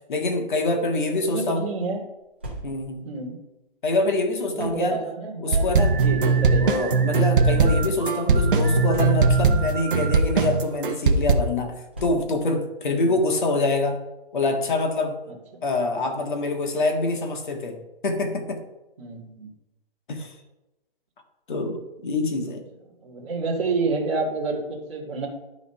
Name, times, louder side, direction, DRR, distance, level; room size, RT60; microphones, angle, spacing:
voice 1, 0.1-1.6 2.6-3.1 3.8-5.0 5.4-14.0 14.3-15.2 15.6-17.8 18.0-18.6 20.1-20.4 21.5-22.6, left 2 dB, 50° left, 3 dB, 1.8 m, -25 dB
voice 2, 1.3-2.0 3.0-3.4 4.5-6.7 7.5-7.6 13.0-13.2 15.3-15.4 19.0-19.5 23.0-25.3, right 3 dB, 30° right, -4 dB, 2.0 m, -29 dB
sound 1, 2.2-3.0 3.8-4.9 6.0-6.6 7.4-7.6 7.9-8.0 8.9-9.5 10.4-10.6 11.9-12.5, right 1 dB, 10° right, 0.5 m, -38 dB
sound 2, 5.5-11.4, right 4 dB, 55° right, 1.0 m, -20 dB
12.0 x 4.1 x 5.5 m, 0.99 s
hypercardioid pair, 180°, 30 cm